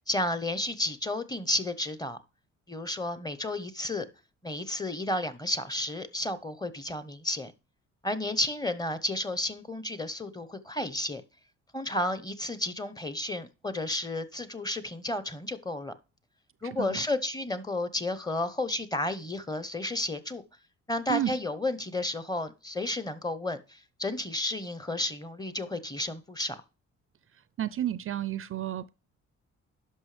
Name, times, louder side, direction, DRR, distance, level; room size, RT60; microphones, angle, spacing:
voice 1, 0.1-2.2 2.7-4.1 4.4-7.5 8.0-11.2 11.7-15.9 16.6-20.4 20.9-26.6, left 1 dB, 15° left, 0.8 m, -32 dB
voice 2, 16.6-17.0 21.1-21.3 27.6-28.9, right 11 dB, 45° right, 0.4 m, -31 dB
11.0 x 5.9 x 3.3 m
cardioid pair, 90°, 30 cm